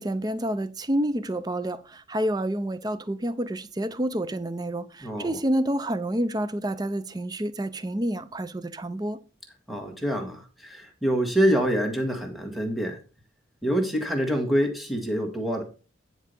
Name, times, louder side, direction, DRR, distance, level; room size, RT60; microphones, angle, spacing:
voice 1, 0.0-9.2, right 1 dB, 20° right, 0.5 m, -28 dB
voice 2, 5.0-5.4 9.7-13.0 13.6-15.6, equal, ahead, 1.7 m, -26 dB
9.7 x 4.7 x 5.4 m
head